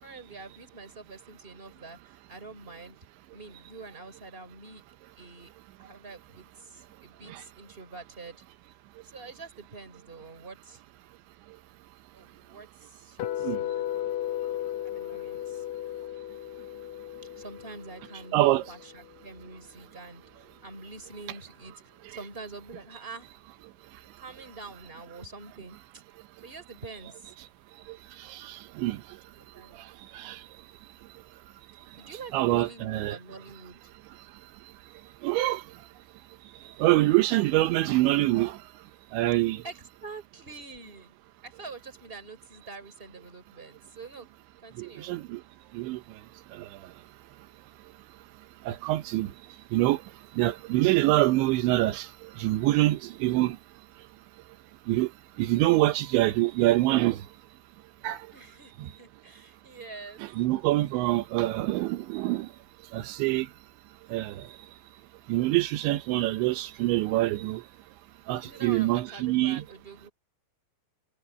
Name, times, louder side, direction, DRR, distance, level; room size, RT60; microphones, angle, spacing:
voice 1, 0.0-3.0 3.3-4.8 5.2-5.5 5.8-8.4 9.0-10.8 12.1-13.8 14.8-15.6 17.4-21.7 22.1-23.3 24.2-25.8 26.4-27.3 29.4-29.8 32.0-33.9 39.6-41.1 41.4-44.3 44.6-45.1 58.3-60.2 68.4-70.1, right 3 dB, 10° right, 4.1 m, -45 dB
sound 1, 13.2-19.3, left 12 dB, 80° left, 1.6 m, -35 dB
voice 2, 18.3-18.6 27.9-29.0 29.7-30.4 32.3-33.2 35.2-35.7 36.8-38.6 39.1-39.6 44.8-45.4 45.7-46.0 46.5-46.9 48.6-49.3 49.7-50.0 50.3-53.6 54.9-55.1 55.4-57.3 58.0-58.3 58.8-58.9 60.2-62.5 62.9-63.5 64.1-64.5 65.3-67.6 68.3-69.6, right 17 dB, 85° right, 3.3 m, -25 dB
omnidirectional pair, 5.2 m